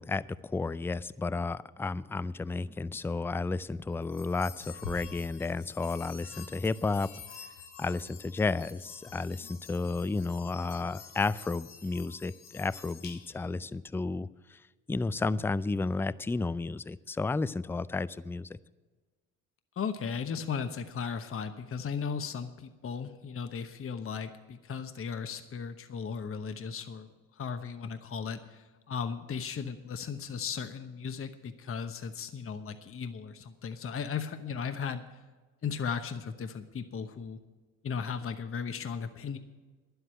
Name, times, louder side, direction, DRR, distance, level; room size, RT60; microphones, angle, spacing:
voice 1, 0.0-7.1 7.8-14.6 14.9-18.6, left 3 dB, 5° left, 18 dB, 0.3 m, -32 dB
sound 1, 4.0-13.6, left 5 dB, 85° left, 1.2 m, -48 dB
voice 2, 19.8-35.0 35.6-37.4 37.8-39.4, left 6 dB, 35° left, 9 dB, 1.0 m, -36 dB
11.0 x 8.0 x 8.8 m, 1.3 s
hypercardioid pair, 55°, 38 cm